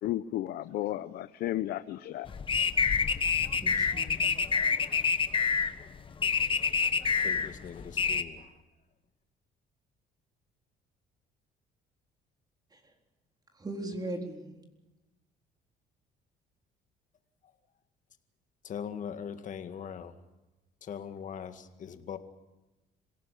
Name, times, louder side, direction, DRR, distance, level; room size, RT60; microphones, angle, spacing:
voice 1, 0.0-2.3, left 14 dB, 70° left, 13 dB, 0.8 m, -33 dB
sound 1, 2.3-8.2, left 5 dB, 30° left, 1.3 m, -27 dB
voice 2, 3.3-4.4 12.7-12.8 13.5-14.7, right 1 dB, 25° right, 3 dB, 4.0 m, -39 dB
voice 3, 7.2-8.5 18.6-20.2 20.8-22.2, left 7 dB, 50° left, 8 dB, 2.0 m, -41 dB
26.5 x 18.0 x 8.4 m, 1.1 s
cardioid pair, 110°, 17 cm